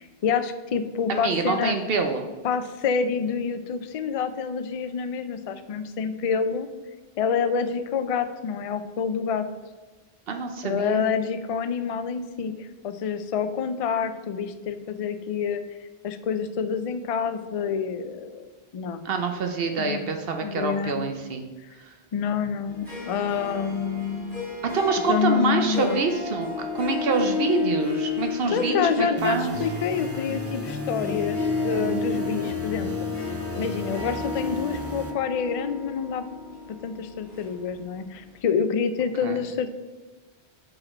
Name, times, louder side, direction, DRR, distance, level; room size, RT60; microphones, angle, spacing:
voice 1, 0.0-1.7 2.4-6.7 7.2-9.4 10.6-15.6 16.0-19.0 19.8-20.1 20.4-21.0 22.1-24.3 25.1-26.0 28.5-36.2 36.8-39.7, left 6 dB, 60° left, 10 dB, 0.3 m, -27 dB
voice 2, 1.1-2.3 10.3-11.0 19.0-21.4 21.8-21.9 24.7-29.5 39.2-39.3, right 4 dB, 65° right, 5 dB, 0.8 m, -26 dB
Harp, 22.7-38.0, left 4 dB, ahead, 2.2 m, -32 dB
sound 1, 29.2-35.1, right 2 dB, 20° right, 0.4 m, -36 dB
6.4 x 4.9 x 4.3 m, 1.2 s
omnidirectional pair, 1.1 m